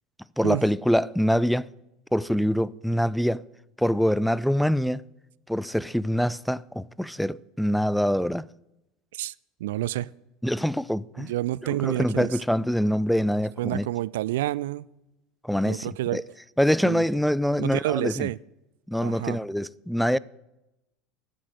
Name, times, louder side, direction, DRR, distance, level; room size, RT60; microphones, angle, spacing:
voice 1, 0.4-1.7 2.1-3.4 3.8-5.0 5.5-8.5 10.4-11.3 11.6-13.9 15.4-16.2 16.6-18.3 18.9-20.2, equal, ahead, 0.4 m, -25 dB
voice 2, 9.6-10.1 11.2-12.4 13.6-14.9 15.6-16.2 16.8-17.0 17.6-18.4 19.0-19.4, right 15 dB, 70° right, 0.3 m, -29 dB
10.5 x 7.8 x 9.2 m
hypercardioid pair, 75°, 0 cm